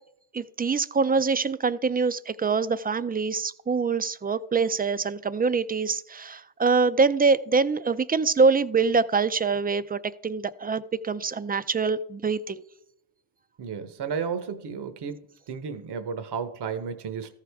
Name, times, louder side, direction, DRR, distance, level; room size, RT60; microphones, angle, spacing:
voice 1, 0.3-12.6, right 4 dB, 20° right, 14 dB, 0.4 m, -24 dB
voice 2, 13.6-15.2 15.5-17.3, right 6 dB, 60° right, 9 dB, 1.0 m, -33 dB
14.0 x 4.9 x 3.5 m, 0.77 s
cardioid pair, 65°, 45 cm